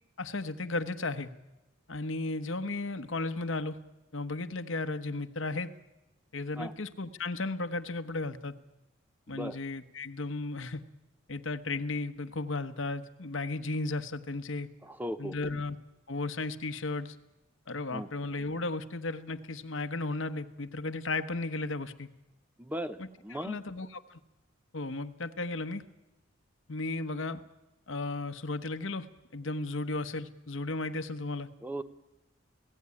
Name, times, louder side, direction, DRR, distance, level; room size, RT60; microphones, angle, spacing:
voice 1, 0.2-1.3 1.9-3.8 4.1-5.7 6.3-8.5 9.3-10.8 11.3-14.7 15.2-15.8 16.1-17.1 17.7-22.1 23.0-24.2 24.7-25.8 26.7-27.4 27.9-31.5, left 3 dB, 70° left, 10 dB, 1.2 m, -35 dB
voice 2, 9.3-9.6 14.8-15.5 17.9-18.1 22.6-23.6 31.6-31.8, right 1 dB, 10° right, 10 dB, 0.8 m, -37 dB
26.5 x 16.5 x 9.8 m, 1.0 s
head